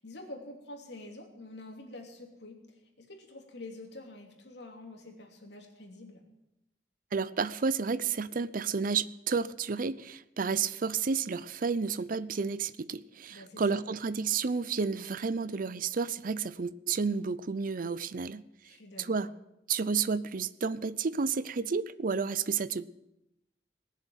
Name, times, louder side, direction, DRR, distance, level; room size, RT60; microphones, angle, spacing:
voice 1, 0.0-2.6 3.0-6.2 13.3-13.8 18.6-19.3, left 2 dB, 70° left, 3.0 m, -47 dB
voice 2, 7.1-18.4 19.0-19.3 19.7-22.8, right 5 dB, 50° right, 0.6 m, -31 dB
19.5 x 7.3 x 9.1 m
head